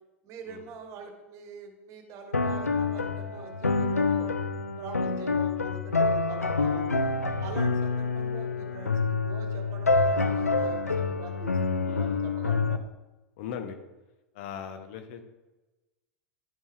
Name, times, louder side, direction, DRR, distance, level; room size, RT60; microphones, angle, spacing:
voice 1, 0.2-4.3 4.8-7.0 7.4-12.8, right 5 dB, 40° right, 4 dB, 1.6 m, -44 dB
sound 1, 2.3-12.8, left 3 dB, 90° left, 0.4 m, -27 dB
voice 2, 4.9-5.3 7.5-7.6 11.9-12.3 13.4-13.8 14.3-15.2, left 8 dB, 55° left, 7 dB, 1.0 m, -40 dB
11.0 x 5.4 x 3.4 m, 1.1 s
figure-of-eight pair, 85°, 8 cm